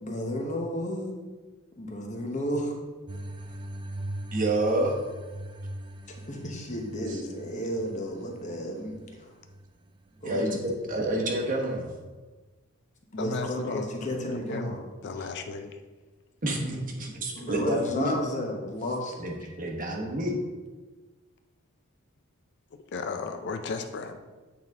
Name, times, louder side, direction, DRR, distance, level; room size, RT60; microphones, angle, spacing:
voice 1, 0.0-1.1 1.8-2.7 6.1-9.3 10.2-10.6 13.1-14.8 17.3-19.2, equal, 35° left, 2 dB, 1.0 m, -32 dB
sound 1, 3.1-11.1, right 1 dB, 25° right, 0.4 m, -41 dB
voice 2, 4.3-5.0 7.1-7.2 10.2-11.9 16.4-18.1 19.2-20.4, right 1 dB, 40° right, 1 dB, 1.1 m, -28 dB
voice 3, 13.2-15.8 22.7-24.2, left 4 dB, 55° left, 7 dB, 0.4 m, -35 dB
8.5 x 4.1 x 3.6 m, 1.3 s
head